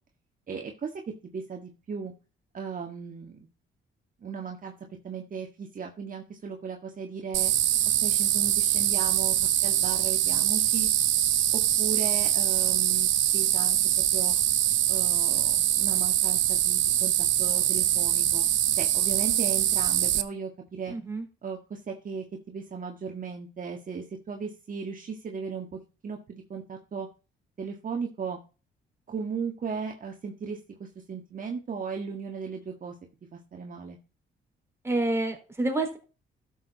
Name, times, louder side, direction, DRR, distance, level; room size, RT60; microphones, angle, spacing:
voice 1, 0.5-2.1 2.5-3.4 4.2-4.7 5.0-7.5 8.0-10.9 11.5-13.8 14.1-14.4 14.9-18.5 18.8-21.0 21.4-27.1 27.6-28.4 29.1-33.0 33.3-34.0, right 5 dB, 45° right, 2 dB, 1.8 m, -36 dB
sound 1, 7.3-20.2, right 12 dB, 75° right, 0.9 m, -24 dB
voice 2, 20.9-21.2 34.8-36.0, right 2 dB, 15° right, 2 dB, 4.1 m, -28 dB
12.5 x 6.9 x 4.0 m, 0.33 s
cardioid pair, 90°, 20 cm